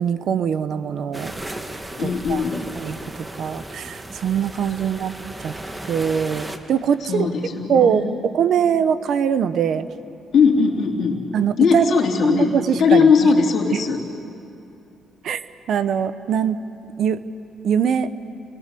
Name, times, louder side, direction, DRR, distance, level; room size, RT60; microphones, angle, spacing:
voice 1, 0.0-1.3 2.0-2.4 2.8-5.5 5.9-7.3 7.7-9.9 11.3-11.9 12.2-13.3 13.7-13.8 15.2-15.4 15.7-16.7 17.0-17.3 17.6-18.1, right 8 dB, 70° right, 12 dB, 0.9 m, -22 dB
sound 1, 1.1-6.6, right 1 dB, 15° right, 1.7 m, -35 dB
voice 2, 2.0-2.6 7.0-8.2 10.3-11.2 11.6-14.0, left 5 dB, 60° left, 1 dB, 2.5 m, -19 dB
28.0 x 19.5 x 6.9 m, 2.6 s
cardioid pair, 90°, 0 cm